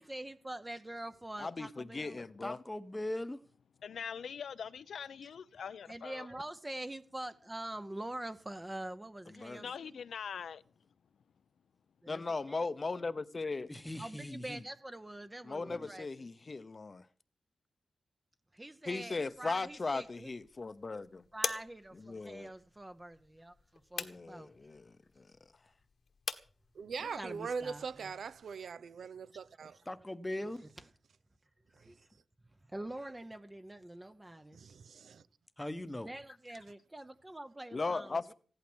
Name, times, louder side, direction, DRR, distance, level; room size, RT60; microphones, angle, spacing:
voice 1, 0.0-2.2 5.9-10.0 12.0-12.2 12.5-12.7 14.0-16.1 18.5-20.3 21.3-23.5 23.9-24.5 27.0-28.1 31.7-31.9 32.7-34.6 36.0-38.3, right 1 dB, 15° right, 0.8 m, -45 dB
voice 2, 1.4-2.6 9.4-9.7 12.1-13.7 15.4-17.0 18.9-21.2 22.0-22.5 24.0-25.3 37.7-38.3, left 3 dB, 30° left, 0.8 m, -38 dB
voice 3, 2.4-3.4 13.7-14.6 15.7-15.9 29.9-30.7 35.6-36.1, left 1 dB, 10° left, 1.0 m, -40 dB
voice 4, 3.8-6.3 9.6-10.6, left 7 dB, 80° left, 0.7 m, -43 dB
sound 1, 19.3-28.5, left 5 dB, 55° left, 1.4 m, -46 dB
voice 5, 26.7-29.8 34.5-35.2, right 5 dB, 70° right, 0.8 m, -41 dB
16.0 x 11.5 x 6.2 m
wide cardioid pair, 140°, 0 cm